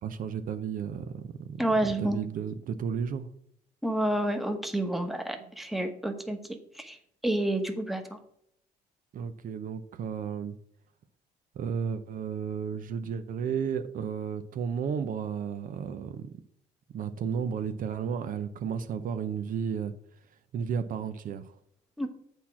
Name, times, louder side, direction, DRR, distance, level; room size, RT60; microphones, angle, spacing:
voice 1, 0.0-3.3 5.4-5.5 9.1-10.6 11.5-16.3 16.9-19.9 20.5-21.6, right 7 dB, 55° right, 9 dB, 0.7 m, -33 dB
voice 2, 1.6-2.2 3.8-7.0 7.2-8.2 22.0-22.1, right 1 dB, ahead, 5 dB, 1.1 m, -29 dB
8.2 x 4.3 x 6.0 m, 0.69 s
cardioid pair, 110°, 17 cm